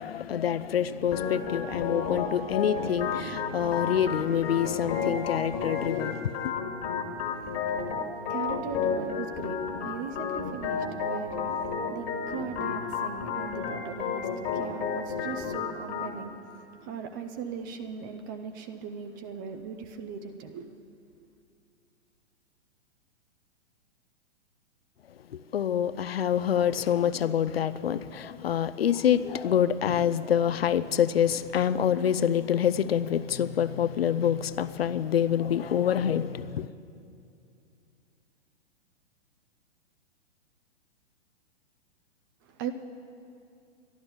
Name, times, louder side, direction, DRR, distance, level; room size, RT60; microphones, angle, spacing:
voice 1, 0.0-6.3 25.5-36.7, left 9 dB, 60° left, 0.5 m, -26 dB
Organ, 1.1-16.1, left 5 dB, 30° left, 1.7 m, -32 dB
voice 2, 7.2-20.7 42.5-42.7, right 6 dB, 20° right, 0.4 m, -39 dB
12.5 x 11.5 x 6.9 m
figure-of-eight pair, 115°, 35 cm